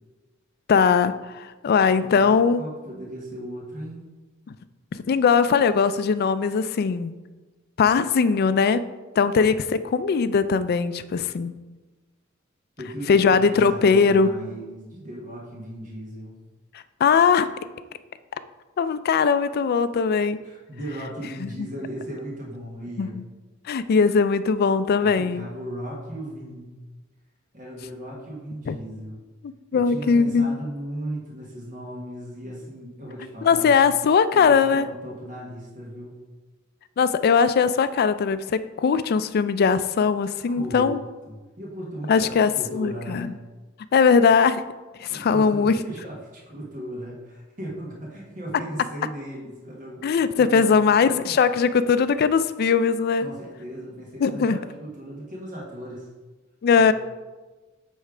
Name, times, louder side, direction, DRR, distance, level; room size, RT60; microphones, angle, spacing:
voice 1, 0.7-2.6 4.9-7.1 7.8-8.8 9.2-11.5 13.1-14.4 17.0-17.5 18.8-20.4 21.4-21.7 23.0-23.2 23.7-25.4 28.7-28.8 29.7-30.6 33.4-34.9 37.0-41.0 42.1-43.3 43.9-44.6 45.0-45.7 50.0-53.3 54.2-54.6 56.6-56.9, left 5 dB, 50° left, 13 dB, 0.3 m, -20 dB
voice 2, 1.9-4.0 12.8-16.4 20.4-23.2 25.0-26.8 27.5-29.2 29.7-33.7 34.3-36.2 40.5-41.0 41.3-43.4 45.1-46.2 46.5-51.3 53.2-56.1 56.8-56.9, right 1 dB, 40° right, -4 dB, 1.4 m, -37 dB
8.4 x 3.2 x 4.9 m, 1.2 s
head